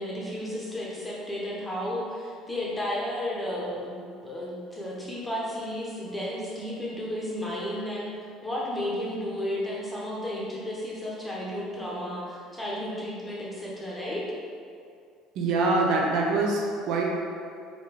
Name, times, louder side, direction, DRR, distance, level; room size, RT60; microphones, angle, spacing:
voice 1, 0.0-8.1 8.4-14.2, left 1 dB, 10° left, -5 dB, 1.0 m, -33 dB
voice 2, 15.4-17.0, right 3 dB, 60° right, -1 dB, 0.9 m, -24 dB
5.0 x 3.8 x 5.2 m, 2.3 s
cardioid pair, 170°, 0 cm